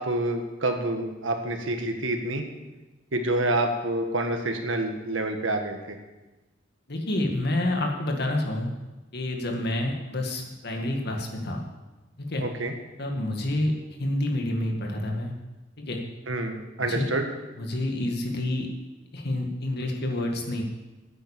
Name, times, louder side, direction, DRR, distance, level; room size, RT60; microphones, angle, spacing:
voice 1, 0.0-2.4 3.1-6.0 12.4-12.7 16.3-17.2, right 2 dB, 80° right, 5 dB, 1.6 m, -27 dB
voice 2, 6.9-8.7 9.1-11.6 12.2-12.4 13.0-13.7 14.0-15.3 15.8-16.0 16.9-17.1 17.6-18.7 19.1-20.6, left 1 dB, 55° left, 1 dB, 1.9 m, -28 dB
9.6 x 9.0 x 7.3 m, 1.1 s
head